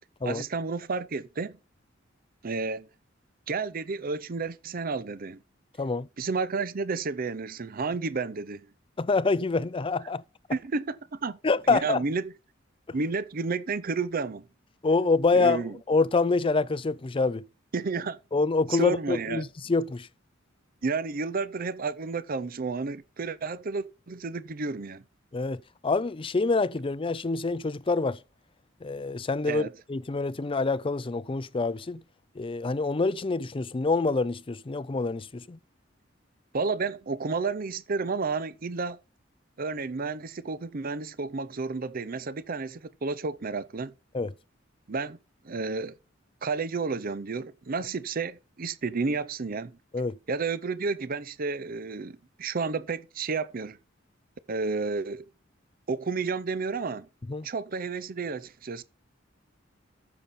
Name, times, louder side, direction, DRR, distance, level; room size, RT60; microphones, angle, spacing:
voice 1, 0.2-1.6 2.4-2.9 3.5-5.4 6.2-8.7 10.5-11.4 11.7-12.3 12.9-14.4 15.3-15.8 17.7-18.2 18.7-19.5 20.8-25.0 29.5-29.7 36.5-39.0 39.6-43.9 44.9-45.2 45.4-46.0 46.4-49.8 50.3-53.8 54.5-55.3 55.9-57.1 57.4-58.8, right 4 dB, 50° right, 0.6 m, -31 dB
voice 2, 5.8-6.1 9.0-10.2 11.4-12.0 14.8-17.4 18.3-20.1 25.3-28.2 28.8-32.0 32.4-35.6 44.1-44.3 49.9-50.2 57.3-57.5, left 3 dB, 25° left, 0.5 m, -26 dB
14.5 x 6.8 x 4.2 m
head